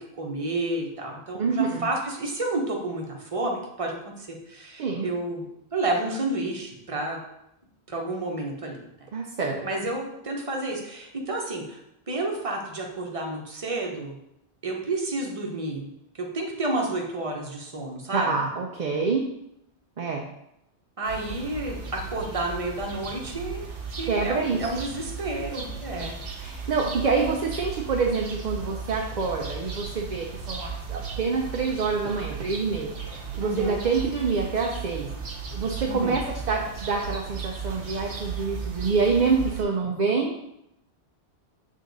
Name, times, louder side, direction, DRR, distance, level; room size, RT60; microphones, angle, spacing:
voice 1, 0.2-5.5 5.7-7.2 7.9-8.9 9.6-11.8 12.1-14.2 14.6-15.9 16.2-18.3 21.0-23.6 24.0-26.2 33.4-33.8 35.9-36.2, right 2 dB, 30° right, 0 dB, 1.0 m, -30 dB
voice 2, 1.4-1.9 4.8-5.1 9.1-9.6 18.1-19.2 20.0-20.2 24.1-24.6 25.9-35.1 35.5-40.4, right 4 dB, 50° right, 0 dB, 0.6 m, -27 dB
sound 1, 21.0-39.6, right 5 dB, 90° right, 1.3 m, -36 dB
6.8 x 3.7 x 4.0 m, 0.83 s
omnidirectional pair, 1.1 m